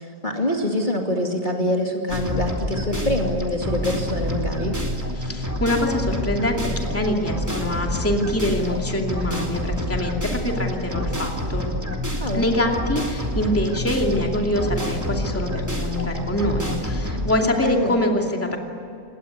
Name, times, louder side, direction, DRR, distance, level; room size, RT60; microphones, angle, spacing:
voice 1, 0.0-4.8 12.2-12.4 17.6-17.9, left 1 dB, 30° left, 1 dB, 2.5 m, -25 dB
sound 1, 2.1-17.4, equal, 10° right, 2.7 m, -27 dB
voice 2, 5.2-11.7 12.3-18.6, left 1 dB, 10° left, 1 dB, 2.5 m, -24 dB
27.0 x 21.5 x 9.7 m, 2.8 s
omnidirectional pair, 1.8 m